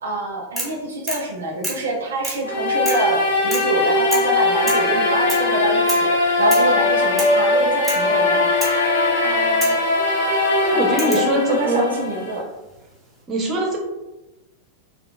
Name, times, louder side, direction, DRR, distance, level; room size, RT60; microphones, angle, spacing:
voice 1, 0.0-8.5 9.2-9.8 10.7-12.4, right 2 dB, 70° right, 0 dB, 0.4 m, -26 dB
sound 1, 0.6-0.8 1.1-1.3 1.6-1.9 2.2-2.5 2.9-3.1 3.5-3.8 4.1-4.3 4.7-4.9 5.3-5.5 5.9-6.1 6.5-6.7 7.2-7.4 7.8-8.1 8.6-8.8 9.6-9.8 11.0-11.3 12.5-13.0, right 1 dB, ahead, 0.8 m, -29 dB
sound 2, 2.4-12.4, left 2 dB, 65° left, 0.6 m, -20 dB
voice 2, 10.6-11.9 13.3-13.8, right 1 dB, 25° right, 0 dB, 0.6 m, -21 dB
2.7 x 2.3 x 2.2 m, 1.0 s
figure-of-eight pair, 90°, 0 cm